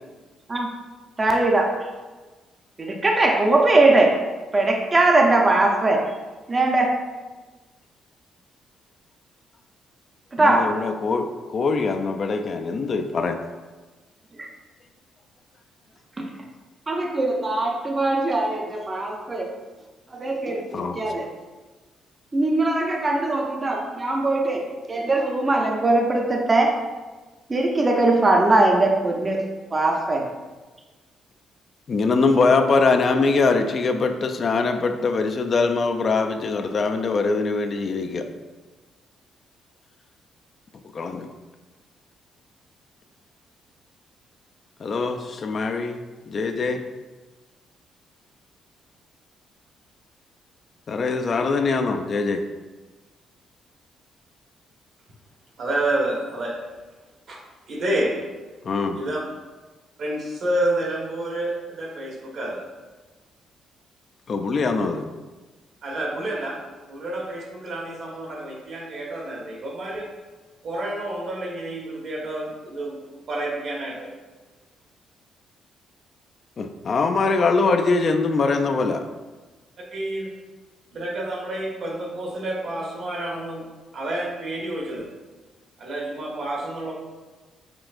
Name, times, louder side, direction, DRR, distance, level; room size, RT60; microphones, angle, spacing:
voice 1, 1.2-1.7 2.8-4.2 4.5-6.0 6.5-7.0 10.3-10.7 14.4-14.5 16.2-16.3 16.9-19.5 20.1-20.6 20.9-21.3 22.3-26.8 27.5-29.4 29.7-30.3, right 2 dB, 25° right, 1 dB, 0.5 m, -20 dB
voice 2, 10.4-13.4 20.7-21.0 31.9-38.3 40.9-41.3 44.8-46.0 46.3-46.8 50.9-52.4 58.6-59.0 64.3-65.1 76.6-79.0, left 4 dB, 45° left, 6 dB, 0.3 m, -22 dB
voice 3, 55.6-56.5 57.3-57.4 57.7-58.1 58.9-59.2 60.0-62.6 65.8-66.6 66.9-70.1 70.6-73.0 73.3-74.1 79.9-80.3 80.9-83.6 83.9-85.1 85.8-87.0, right 1 dB, 65° right, -2 dB, 1.1 m, -29 dB
5.9 x 2.5 x 2.4 m, 1.3 s
cardioid pair, 90°, 0 cm